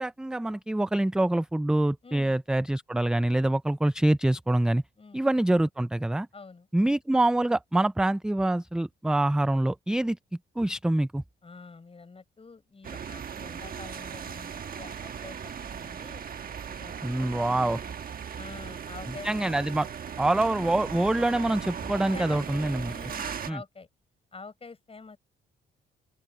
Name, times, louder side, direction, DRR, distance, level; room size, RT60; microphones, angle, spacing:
voice 1, 0.0-4.8 5.1-6.3 6.7-10.2 10.6-11.2 17.0-17.8 19.2-19.9 20.2-22.9 23.5-23.6, right 1 dB, 5° right, 0.4 m, -25 dB
voice 2, 2.0-2.4 5.0-5.2 6.3-6.7 11.4-16.2 16.7-17.9 18.3-19.3 22.1-22.4 22.8-23.9 24.3-25.2, left 4 dB, 30° left, 7.2 m, -47 dB
sound 1, 12.8-23.5, right 7 dB, 45° right, 1.2 m, -38 dB
open air
cardioid pair, 90°, 20 cm